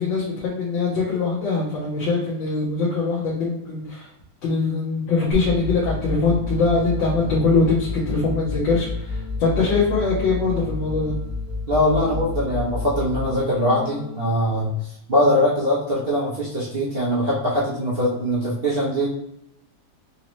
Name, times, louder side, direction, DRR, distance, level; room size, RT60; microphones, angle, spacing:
voice 1, 0.0-4.1 4.4-11.1, left 4 dB, 75° left, -7 dB, 1.6 m, -22 dB
sound 1, 5.3-14.3, left 3 dB, 55° left, 1.1 m, -30 dB
voice 2, 11.7-14.7 15.1-19.1, equal, 55° right, -7 dB, 0.6 m, -22 dB
4.0 x 2.7 x 3.1 m, 0.79 s
omnidirectional pair, 2.1 m